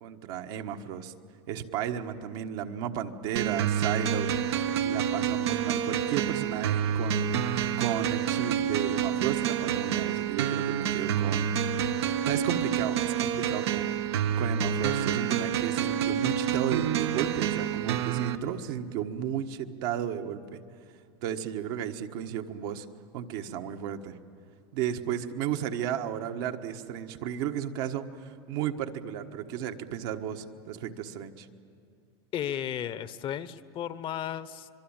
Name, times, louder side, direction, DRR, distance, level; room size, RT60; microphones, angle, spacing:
voice 1, 0.0-1.1 1.5-4.3 4.6-11.6 12.0-20.6 21.2-22.8 23.1-24.2 24.7-31.5, right 9 dB, 65° right, 5 dB, 1.5 m, -34 dB
sound 1, 3.4-18.4, right 9 dB, 85° right, 1.3 m, -28 dB
voice 2, 32.3-34.7, left 10 dB, 40° left, 14 dB, 1.0 m, -34 dB
25.5 x 22.5 x 8.9 m, 2.4 s
supercardioid pair, 115°, 13 cm